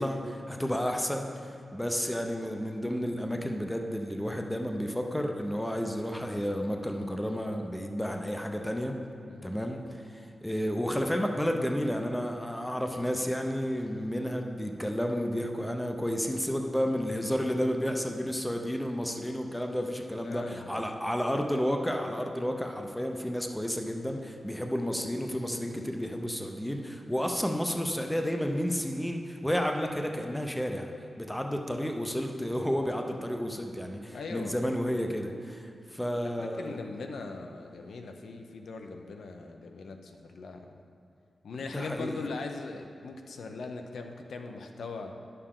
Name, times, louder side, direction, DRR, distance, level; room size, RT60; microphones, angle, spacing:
voice 1, 0.0-9.0 9.4-36.8 41.6-42.2, equal, 5° left, 3 dB, 0.5 m, -31 dB
voice 2, 9.2-9.6 20.1-20.8 34.1-34.6 36.2-40.8 41.4-45.1, left 3 dB, 85° left, 4 dB, 0.6 m, -40 dB
10.5 x 6.7 x 3.7 m, 2.5 s
wide cardioid pair, 170°, 0 cm